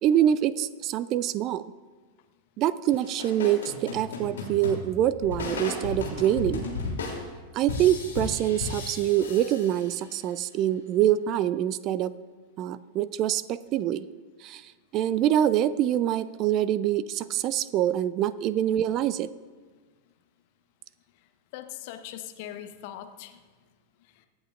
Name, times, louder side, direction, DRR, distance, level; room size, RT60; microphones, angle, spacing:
voice 1, 0.0-1.6 2.6-6.7 7.5-12.1 12.6-14.1 14.4-14.6 14.9-19.3, right 11 dB, 35° right, 17 dB, 0.4 m, -25 dB
sound 1, 2.9-10.3, left 4 dB, 65° left, 3.0 m, -35 dB
voice 2, 21.5-23.4 24.2-24.3, left 11 dB, 50° left, 7 dB, 1.0 m, -40 dB
23.5 x 8.2 x 2.5 m, 1.4 s
figure-of-eight pair, 90°, 0 cm